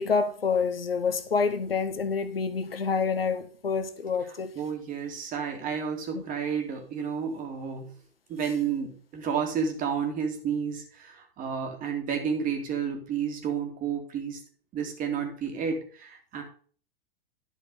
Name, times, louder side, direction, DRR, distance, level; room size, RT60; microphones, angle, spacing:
voice 1, 0.0-4.5 6.1-6.2, left 5 dB, 75° left, 1.1 m, -27 dB
voice 2, 4.3-7.9 8.3-14.4 14.7-16.4, right 7 dB, 25° right, 2.5 m, -31 dB
11.0 x 5.2 x 5.6 m
figure-of-eight pair, 100°, 30 cm